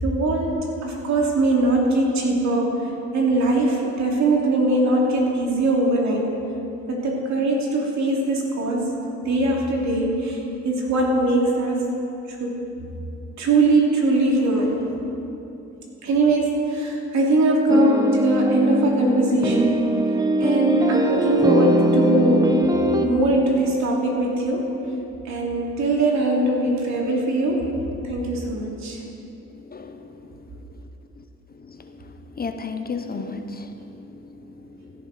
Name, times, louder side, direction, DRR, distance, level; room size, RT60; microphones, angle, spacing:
voice 1, 0.0-2.7 3.1-6.3 6.9-8.9 9.2-11.9 12.3-12.6 13.4-14.9 16.0-19.8 20.4-22.5 23.0-24.7 25.2-27.7 28.1-29.0, right 2 dB, 65° right, 2.7 m, -21 dB
sound 1, 17.7-23.1, right 1 dB, 10° right, 0.9 m, -21 dB
voice 2, 29.7-30.4 31.2-31.3 31.6-32.1 32.4-34.9, left 4 dB, 30° left, 0.7 m, -35 dB
16.5 x 11.0 x 4.1 m
cardioid pair, 90°, 30 cm